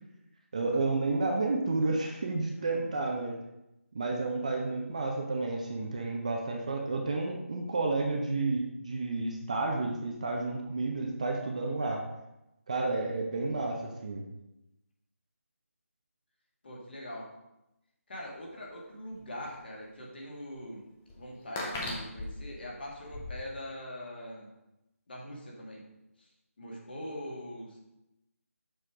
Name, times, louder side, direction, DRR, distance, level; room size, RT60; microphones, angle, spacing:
voice 1, 0.5-3.4 3.9-12.0 12.7-14.2, right 3 dB, 30° right, 1 dB, 0.7 m, -31 dB
voice 2, 2.5-2.9 16.6-17.3 18.1-20.8 21.2-24.5 25.1-25.8 26.2-26.3 26.6-27.8, left 1 dB, 40° left, -3 dB, 2.1 m, -42 dB
sound 1, 18.2-18.3 19.1-19.2 19.5-19.6 20.6-20.7 21.1-23.3, left 2 dB, 5° left, 0.4 m, -38 dB
6.9 x 4.5 x 4.9 m, 0.91 s
figure-of-eight pair, 170°, 8 cm